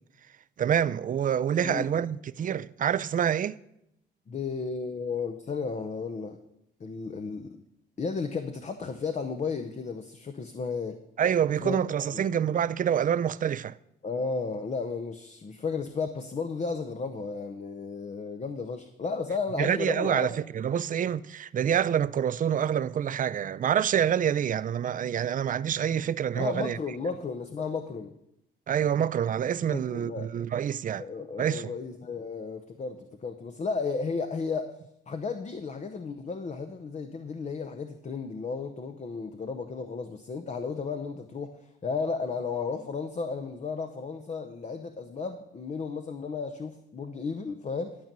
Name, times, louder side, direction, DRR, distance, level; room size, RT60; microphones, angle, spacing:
voice 1, 0.6-3.6 11.2-13.7 19.6-26.8 28.7-31.0 31.4-31.7, right 9 dB, 45° right, 0.5 m, -27 dB
voice 2, 1.6-2.0 4.3-6.4 6.8-7.6 8.0-11.0 11.6-11.8 12.1-12.2 14.0-20.4 26.4-28.1 29.7-30.3 31.0-34.8 35.1-48.0, left 4 dB, 35° left, 0.8 m, -34 dB
12.0 x 5.3 x 7.5 m
cardioid pair, 90°, 20 cm